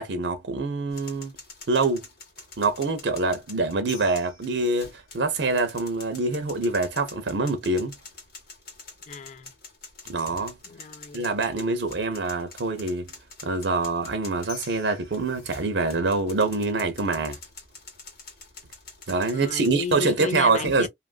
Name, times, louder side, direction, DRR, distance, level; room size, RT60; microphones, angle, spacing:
voice 1, 0.0-1.3 1.7-2.1 2.6-7.9 10.1-10.5 11.1-13.1 13.4-17.4 19.1-20.9, right 3 dB, 80° right, 0.7 m, -25 dB
sound 1, 0.9-20.0, left 4 dB, 60° left, 1.6 m, -46 dB
voice 2, 9.1-9.5 10.6-11.3 19.3-20.9, left 4 dB, 45° left, 0.4 m, -34 dB
2.8 x 2.5 x 2.4 m
head